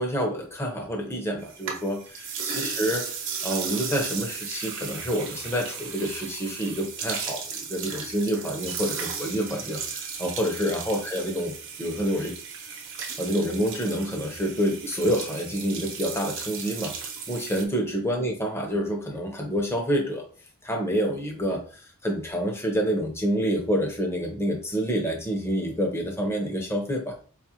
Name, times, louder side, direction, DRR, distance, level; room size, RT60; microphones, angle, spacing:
voice 1, 0.0-3.1 3.4-12.4 13.2-20.2 20.6-27.2, equal, 10° left, 1 dB, 0.7 m, -28 dB
sound 1, 1.4-17.6, right 6 dB, 60° right, 0.8 m, -35 dB
4.6 x 2.4 x 2.9 m, 0.41 s
head